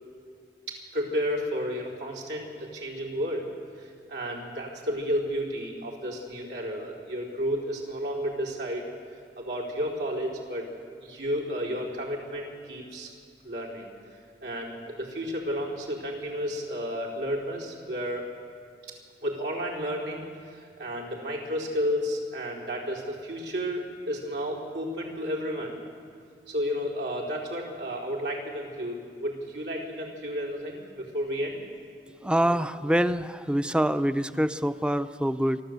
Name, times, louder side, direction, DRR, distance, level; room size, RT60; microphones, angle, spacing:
voice 1, 0.7-3.5 3.8-8.8 9.4-10.7 11.0-13.1 13.4-13.9 14.4-18.2 19.2-25.8 26.5-31.6, equal, 80° right, -2 dB, 4.5 m, -32 dB
voice 2, 32.2-35.6, equal, 5° right, 12 dB, 0.5 m, -25 dB
29.0 x 13.0 x 8.2 m, 2.2 s
head